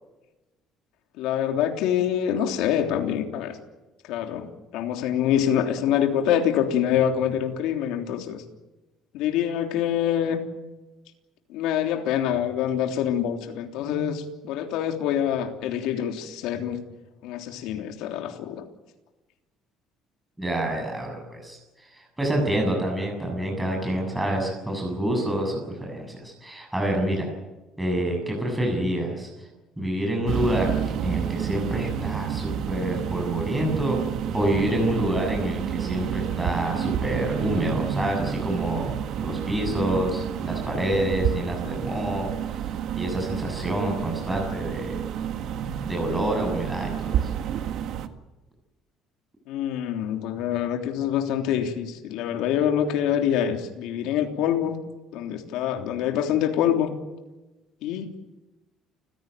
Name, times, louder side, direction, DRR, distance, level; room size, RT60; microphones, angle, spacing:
voice 1, 1.2-3.6 4.1-8.4 9.1-10.4 11.5-16.8 17.2-18.6 49.5-54.8 55.1-56.9 57.8-58.1, left 9 dB, 80° left, 4 dB, 3.3 m, -25 dB
voice 2, 20.4-27.3 27.8-29.3 29.8-30.7 31.0-34.0 34.3-38.9 39.2-42.3 42.9-45.0 45.8-47.3, right 1 dB, 5° right, 0 dB, 7.3 m, -27 dB
sound 1, 30.3-48.1, right 9 dB, 60° right, 1.8 m, -29 dB
30.0 x 16.0 x 9.2 m, 1.1 s
cardioid pair, 145°, 0 cm